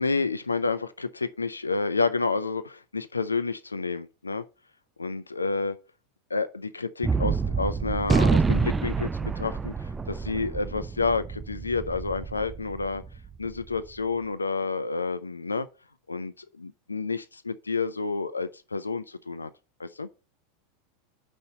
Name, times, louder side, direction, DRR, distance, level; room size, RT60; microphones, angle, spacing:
voice 1, 0.0-4.4 5.0-5.8 6.3-13.0 13.4-15.7 16.1-19.5 19.8-20.1, left 4 dB, 80° left, 0.5 m, -29 dB
Gunshot gunfire, 7.0-13.6, right 4 dB, 15° right, 0.4 m, -27 dB
5.5 x 5.3 x 6.5 m
figure-of-eight pair, 85°, 0 cm